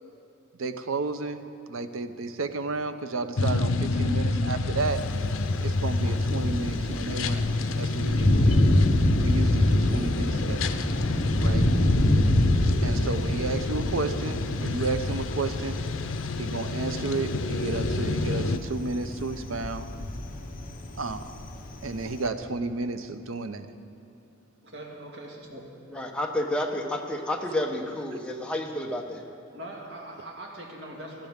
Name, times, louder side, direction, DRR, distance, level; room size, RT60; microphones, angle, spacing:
voice 1, 0.6-1.4 1.7-5.0 5.6-8.6 9.2-10.7 11.4-11.7 12.8-15.8 16.4-19.9 21.0-21.3 21.8-23.7, right 3 dB, 90° right, 10 dB, 0.7 m, -32 dB
sound 1, 3.4-18.6, left 3 dB, 90° left, 0.6 m, -29 dB
Thunder, 4.8-22.3, left 1 dB, 45° left, 0.9 m, -26 dB
voice 2, 24.6-25.6 29.5-31.3, right 1 dB, 60° right, -1 dB, 2.1 m, -41 dB
voice 3, 25.9-29.2, left 1 dB, 5° left, 0 dB, 1.0 m, -30 dB
17.5 x 13.0 x 3.6 m, 3.0 s
head